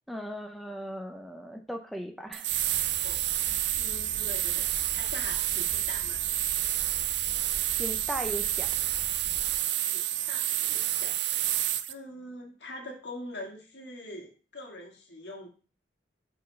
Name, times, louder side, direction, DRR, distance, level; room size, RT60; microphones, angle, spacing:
voice 1, 0.1-2.5 7.8-8.7, equal, ahead, 4 dB, 0.5 m, -37 dB
sound 1, 2.3-11.9, right 13 dB, 70° right, 0.4 m, -29 dB
sound 2, 2.5-9.5, equal, 90° left, 1.7 m, -46 dB
voice 2, 3.0-6.2 9.9-11.2 11.9-15.5, left 1 dB, 75° left, 0 dB, 2.0 m, -44 dB
5.3 x 4.5 x 5.4 m, 0.37 s
head